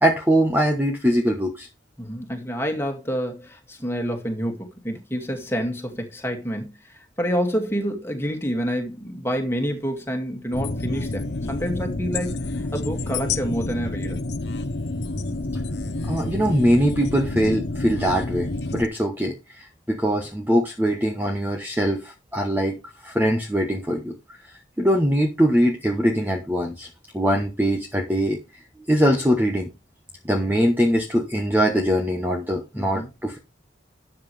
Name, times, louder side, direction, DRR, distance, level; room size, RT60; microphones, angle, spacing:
voice 1, 0.0-1.7 16.0-22.7 23.0-24.1 24.8-26.9 27.1-28.4 28.9-29.7 30.2-33.4, equal, 10° right, 1.2 m, -22 dB
voice 2, 2.0-14.2 32.7-33.1, equal, 10° left, 2.3 m, -28 dB
sound 1, 10.5-18.9, left 2 dB, 55° left, 0.9 m, -29 dB
12.5 x 7.9 x 3.4 m
head